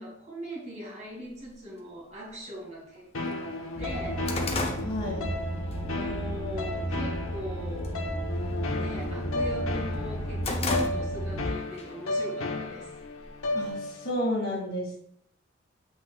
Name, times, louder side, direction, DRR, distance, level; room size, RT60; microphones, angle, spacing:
voice 1, 0.0-4.3 5.8-8.0 8.8-12.9, equal, 35° right, -3 dB, 2.1 m, -41 dB
sound 1, 1.4-1.5 2.4-2.5 3.0-3.1 3.4-5.8 6.2-6.5 6.9-7.4 7.7-8.0 8.3-9.6 9.9-11.4 11.8-11.9 12.8-13.7, left 2 dB, 30° left, 0.7 m, -34 dB
sound 2, 3.1-14.1, left 2 dB, 90° left, 1.0 m, -34 dB
sound 3, 3.8-11.5, right 1 dB, 10° right, 2.2 m, -33 dB
voice 2, 4.8-5.4 13.5-15.0, left 1 dB, 45° left, -3 dB, 2.2 m, -31 dB
7.6 x 5.8 x 2.4 m, 0.72 s
head